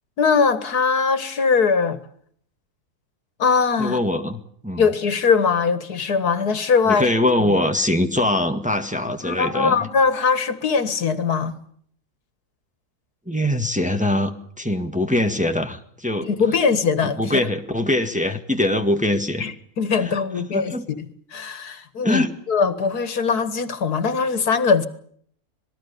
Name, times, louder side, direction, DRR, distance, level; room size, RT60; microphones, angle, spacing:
voice 1, 0.2-2.0 3.4-4.0 4.8-7.1 9.2-11.5 16.3-17.4 19.4-21.1 21.3-24.9, left 5 dB, 80° left, 2.3 m, -21 dB
voice 2, 3.8-4.9 6.9-9.8 13.3-16.3 17.2-19.5 20.0-20.1 20.5-20.8 22.0-22.3, left 1 dB, 5° right, 1.8 m, -22 dB
26.5 x 19.5 x 7.0 m
omnidirectional pair, 1.6 m